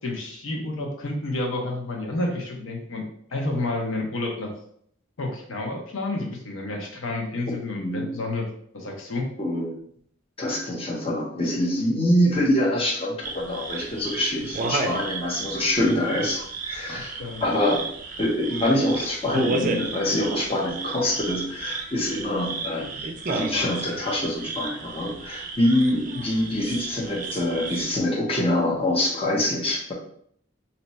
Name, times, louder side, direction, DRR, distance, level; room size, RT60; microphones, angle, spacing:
voice 1, 0.0-3.0 3.3-4.5 5.2-8.5 8.7-9.3 16.9-17.4, left 2 dB, 90° left, 1 dB, 0.7 m, -30 dB
voice 2, 9.4-9.7 10.4-17.8 18.2-23.0 23.3-29.9, left 1 dB, 30° left, -3 dB, 0.7 m, -25 dB
sound 1, 13.2-28.0, right 3 dB, 40° right, 0.4 m, -33 dB
2.7 x 2.2 x 4.0 m, 0.65 s
head